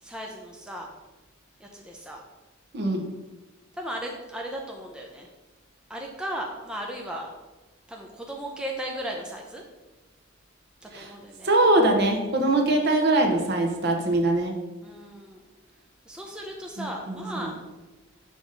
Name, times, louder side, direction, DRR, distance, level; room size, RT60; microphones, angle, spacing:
voice 1, 0.0-0.9 1.6-2.2 3.8-5.3 5.9-7.3 7.9-9.6 10.9-11.5 12.4-12.7 14.8-15.4 16.1-17.6, equal, 5° right, -1 dB, 0.5 m, -36 dB
voice 2, 2.7-3.1 10.9-11.1 11.4-14.5 16.8-17.6, right 2 dB, 55° right, 3 dB, 0.9 m, -22 dB
5.4 x 3.5 x 5.0 m, 1.1 s
head